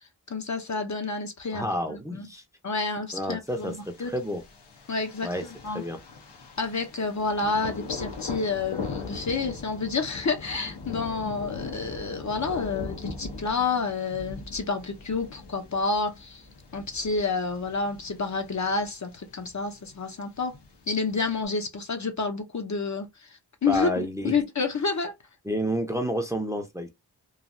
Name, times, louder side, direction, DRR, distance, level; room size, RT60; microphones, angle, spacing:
voice 1, 0.3-2.3 2.6-3.7 4.0-4.1 4.9-5.8 6.6-16.4 16.7-20.6 20.9-23.3 23.6-25.1, left 4 dB, 45° left, 0.6 m, -29 dB
voice 2, 1.5-2.4 3.1-4.4 5.2-5.4 5.7-6.0 23.7-24.3 25.4-26.9, equal, 10° right, 0.6 m, -30 dB
Thunder, 3.5-21.5, left 4 dB, 80° left, 0.9 m, -41 dB
3.1 x 2.2 x 2.5 m
wide cardioid pair, 70°, 41 cm